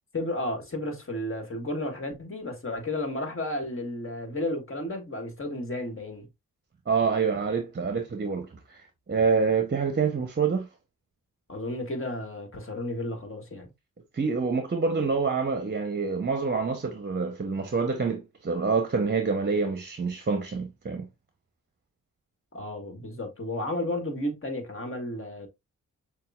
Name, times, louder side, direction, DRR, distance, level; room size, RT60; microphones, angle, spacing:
voice 1, 0.1-6.3 11.5-13.7 22.5-25.5, left 1 dB, 40° left, 1.5 m, -33 dB
voice 2, 6.9-8.8 9.1-10.7 14.1-21.1, right 5 dB, 30° right, 0.8 m, -27 dB
6.5 x 2.4 x 2.3 m
cardioid pair, 50°, 33 cm